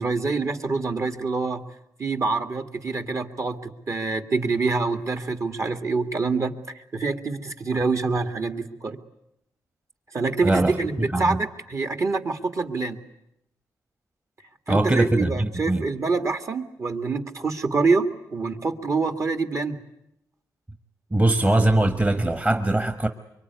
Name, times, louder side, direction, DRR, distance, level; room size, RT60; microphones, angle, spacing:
voice 1, 0.0-1.6 2.0-9.0 10.1-13.0 14.7-19.8, right 4 dB, 45° right, 7 dB, 2.1 m, -26 dB
voice 2, 10.4-11.4 14.7-15.8 21.1-23.1, right 2 dB, 20° right, 8 dB, 1.4 m, -22 dB
24.5 x 23.5 x 9.7 m, 0.84 s
cardioid pair, 85°, 7 cm